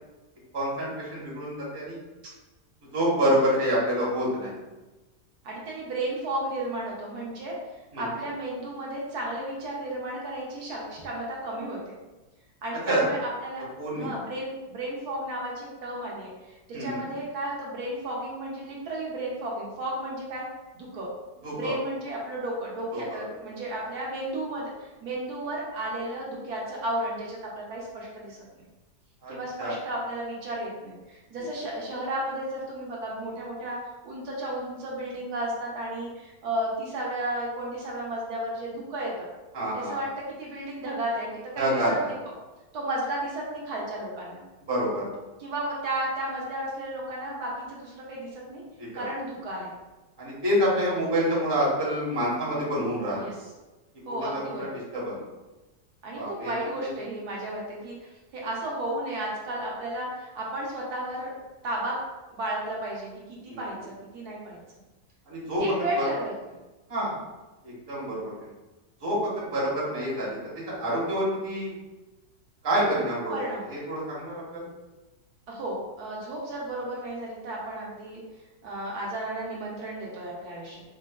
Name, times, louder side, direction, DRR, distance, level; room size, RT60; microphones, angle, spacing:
voice 1, 0.5-2.0 2.9-4.5 7.9-8.1 12.9-13.0 13.8-14.1 16.7-17.0 21.4-21.7 22.9-23.2 29.2-29.7 39.5-40.1 41.6-42.1 44.7-45.1 48.8-49.0 50.2-53.3 54.2-54.7 54.9-55.2 56.1-56.5 63.5-63.7 65.3-66.0 66.9-67.1 67.6-68.5 69.0-70.4 70.7-71.7 72.6-73.4 73.7-74.6, equal, 25° right, -6 dB, 0.6 m, -27 dB
voice 2, 5.4-7.6 8.0-11.9 12.6-13.7 14.0-20.5 20.7-21.1 21.5-28.4 29.3-33.8 34.0-39.3 39.7-42.0 42.7-44.4 45.4-48.6 48.9-49.8 53.1-53.3 54.1-54.8 56.0-61.3 61.6-62.0 62.3-64.6 65.6-66.3 66.9-67.1 73.3-73.7 75.5-78.2 78.6-80.8, right 1 dB, 70° right, -3 dB, 1.1 m, -33 dB
4.5 x 2.1 x 2.2 m, 1.1 s
omnidirectional pair, 1.8 m